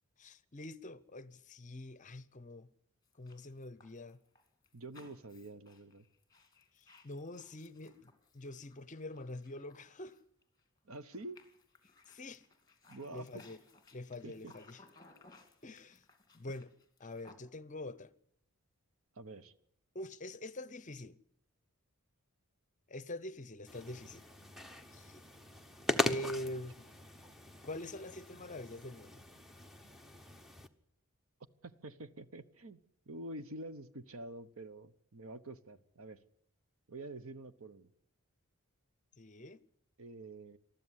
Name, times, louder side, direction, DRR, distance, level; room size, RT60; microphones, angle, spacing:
voice 1, 0.2-2.7 3.2-4.2 6.8-10.2 12.1-12.4 13.1-13.6 13.9-14.8 15.6-16.0 16.3-16.7 17.0-18.1 19.9-21.2 22.9-24.2 24.9-25.2 26.0-26.9 27.5-29.2 39.2-39.6, left 1 dB, 35° left, 0.8 m, -45 dB
sound 1, 3.0-10.6 10.9-17.3, left 3 dB, 15° left, 2.6 m, -63 dB
voice 2, 4.7-6.0 10.8-11.4 12.9-13.5 14.2-14.5 19.1-19.5 31.6-32.8 33.1-36.2 36.9-37.9 40.0-40.6, right 2 dB, 65° right, 1.1 m, -47 dB
sound 2, 23.7-30.7, left 1 dB, ahead, 1.0 m, -40 dB
20.0 x 13.5 x 9.8 m
head